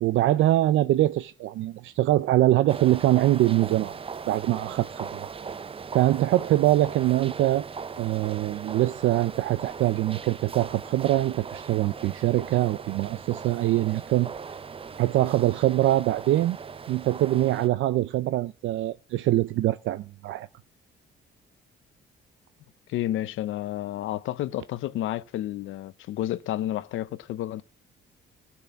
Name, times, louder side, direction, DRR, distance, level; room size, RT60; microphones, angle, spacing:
voice 1, 0.0-3.9 4.3-5.3 5.9-7.7 8.0-14.3 15.0-16.6 16.9-20.5, right 15 dB, 75° right, 0.5 m, -23 dB
sound 1, 2.7-17.7, right 5 dB, 30° right, 0.5 m, -39 dB
voice 2, 22.9-27.6, left 13 dB, 80° left, 0.7 m, -30 dB
15.5 x 6.2 x 7.0 m
cardioid pair, 90°, 20 cm